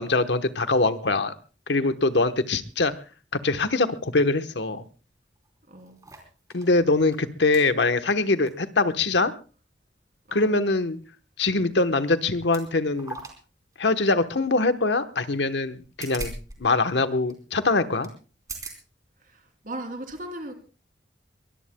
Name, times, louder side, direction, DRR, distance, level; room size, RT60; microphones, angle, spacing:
voice 1, 0.0-1.3 1.7-2.9 3.4-4.8 6.5-9.3 10.3-11.0 11.4-13.2 13.8-16.3 16.6-18.1, left 3 dB, 75° left, 9 dB, 1.1 m, -23 dB
sound 1, 5.0-5.1 5.4-6.7 7.1-7.2 7.5-7.7 8.2-8.6 8.9-9.0 11.7-11.8 12.4-12.7 12.9-13.4 13.7-13.8 15.6-16.6 16.8-16.9 17.3-17.4 18.0-18.1 18.4-18.8 19.5-19.6, right 3 dB, 20° right, 3.5 m, -39 dB
voice 2, 5.7-6.0 10.3-10.6 19.2-20.6, right 1 dB, 45° right, 5 dB, 3.0 m, -38 dB
23.0 x 20.5 x 2.2 m, 0.34 s
head